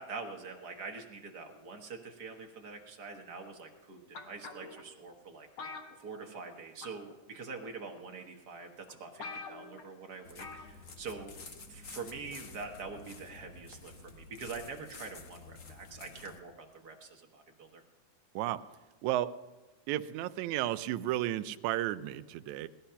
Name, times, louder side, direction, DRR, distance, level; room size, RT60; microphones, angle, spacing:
voice 1, 0.0-5.5 6.0-11.4 11.7-17.8, right 4 dB, 50° right, 3 dB, 1.2 m, -45 dB
sound 1, 4.1-4.8 5.6-6.5 6.8-7.1 8.0-8.1 8.6-8.7 8.9-9.0 9.2-9.9 10.4-10.7 11.0-11.1, left 4 dB, 50° left, 1.9 m, -44 dB
sound 2, 10.2-16.4, left 3 dB, 80° left, 0.7 m, -50 dB
voice 2, 19.9-22.7, right 14 dB, 80° right, 11 dB, 1.9 m, -33 dB
19.0 x 12.0 x 5.7 m, 1.2 s
omnidirectional pair, 3.6 m